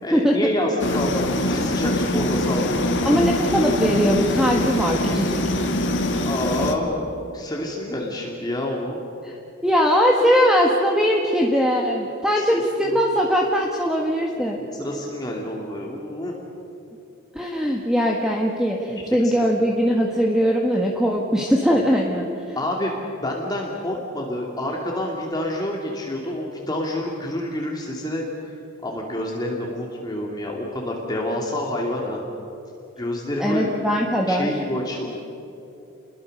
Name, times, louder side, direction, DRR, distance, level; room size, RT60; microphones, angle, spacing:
voice 1, 0.0-3.2 6.2-9.0 12.4-12.6 12.9-13.0 14.4-16.3 19.2-19.3 22.6-28.5 28.8-32.2 33.0-33.7 34.3-35.2, left 1 dB, 20° left, -1 dB, 2.6 m, -28 dB
sound 1, 0.8-6.7, left 1 dB, 60° left, 2.3 m, -24 dB
voice 2, 3.0-5.4 9.2-9.4 9.6-14.6 17.3-22.6 33.4-34.5, equal, 5° right, -1 dB, 1.8 m, -20 dB
29.5 x 22.0 x 6.7 m, 2.8 s
head